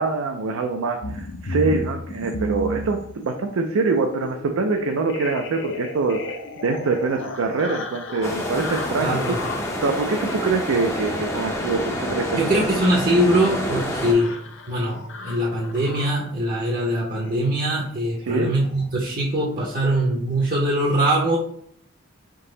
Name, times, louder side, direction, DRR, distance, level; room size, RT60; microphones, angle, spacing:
voice 1, 0.0-6.2 6.6-9.4 9.8-12.6 18.2-18.5, right 4 dB, 80° right, 4 dB, 0.4 m, -24 dB
sound 1, 1.0-16.4 17.1-17.4 17.6-17.9 18.2-18.3 18.6-18.8, left 2 dB, 60° left, 0.5 m, -35 dB
sound 2, 8.2-14.1, equal, 15° left, 0.5 m, -28 dB
voice 2, 9.0-9.4 12.3-14.3 14.7-21.4, right 1 dB, 40° right, -2 dB, 0.6 m, -22 dB
3.8 x 2.7 x 3.8 m, 0.66 s
head